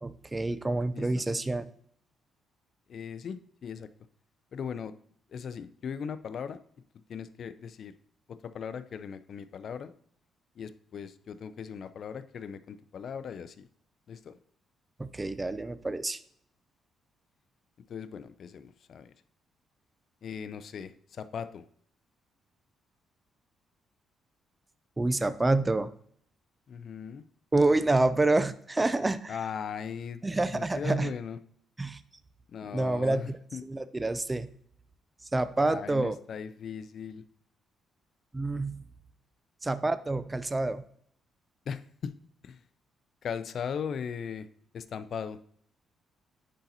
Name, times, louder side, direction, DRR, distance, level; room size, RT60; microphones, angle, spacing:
voice 1, 0.0-1.7 15.0-16.2 25.0-25.9 27.5-29.4 30.2-31.1 31.8-32.0 32.7-34.5 35.3-36.2 38.3-38.9 39.6-40.8, right 2 dB, 20° right, 13 dB, 0.4 m, -28 dB
voice 2, 2.9-3.9 4.5-4.9 5.3-6.6 7.1-7.9 8.3-9.9 10.6-13.7 14.1-14.3 17.9-19.1 20.2-21.6 26.7-27.2 29.3-30.2 30.5-31.4 32.5-33.6 35.6-37.2 41.7-42.1 42.4-42.6 43.2-44.5 44.7-45.4, left 7 dB, 60° left, 12 dB, 0.4 m, -38 dB
10.0 x 4.0 x 2.7 m, 0.63 s
cardioid pair, 90°, 0 cm